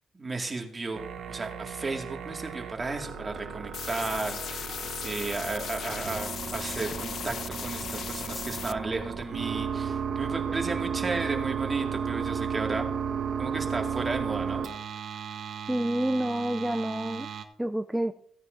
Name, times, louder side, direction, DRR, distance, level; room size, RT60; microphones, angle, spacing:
voice 1, 0.1-1.0 1.3-12.9 13.4-14.6, right 3 dB, 25° right, 2 dB, 2.0 m, -34 dB
sound 1, 0.9-17.4, right 7 dB, 65° right, 1.1 m, -34 dB
sound 2, 3.7-8.7, left 8 dB, 60° left, 0.3 m, -37 dB
voice 2, 15.7-17.3 17.6-18.1, right 1 dB, 5° right, 8 dB, 0.5 m, -28 dB
16.0 x 9.6 x 2.6 m, 0.65 s
cardioid pair, 90°, 0 cm